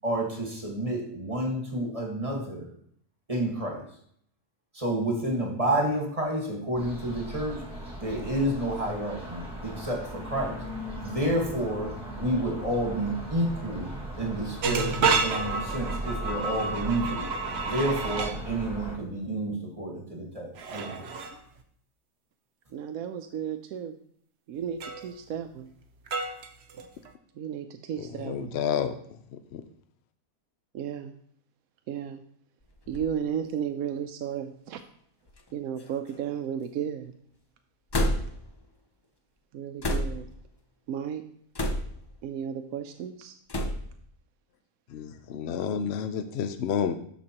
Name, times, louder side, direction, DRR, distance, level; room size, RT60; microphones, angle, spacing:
voice 1, 0.0-2.7 3.3-3.8 4.7-7.6 8.0-10.6 11.0-13.9 14.2-17.2 17.6-21.0, right 1 dB, 25° right, 0 dB, 1.5 m, -30 dB
sound 1, 6.7-19.0, right 1 dB, 5° right, 1.8 m, -38 dB
sound 2, 14.6-18.4 20.6-21.4 24.8-25.1 26.1-27.1, right 4 dB, 55° right, 0.9 m, -30 dB
voice 2, 22.7-23.9 24.5-25.7 27.4-28.6 30.7-31.1 31.9-32.2 32.9-34.8 35.5-37.1 39.5-40.3 40.9-41.2 42.2-43.3, right 8 dB, 75° right, 7 dB, 1.0 m, -34 dB
voice 3, 28.0-29.6 44.9-46.9, left 8 dB, 60° left, 8 dB, 0.7 m, -30 dB
sound 3, 32.6-33.1 33.9-34.0 35.3-35.5 35.8-36.3 37.9-38.5 39.8-40.3 41.5-42.1 43.5-43.9, equal, 35° left, 0.4 m, -29 dB
12.5 x 5.2 x 2.9 m, 0.65 s
omnidirectional pair, 1.5 m